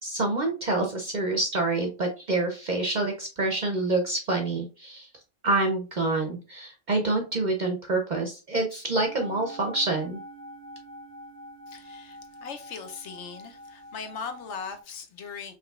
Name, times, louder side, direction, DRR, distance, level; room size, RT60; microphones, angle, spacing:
voice 1, 0.0-5.1 5.4-10.2, right 2 dB, 45° right, 0.6 m, -27 dB
sound 1, 9.0-14.8, equal, 5° left, 1.1 m, -45 dB
voice 2, 11.7-15.5, left 5 dB, 65° left, 0.9 m, -39 dB
4.9 x 3.1 x 2.3 m
omnidirectional pair, 1.3 m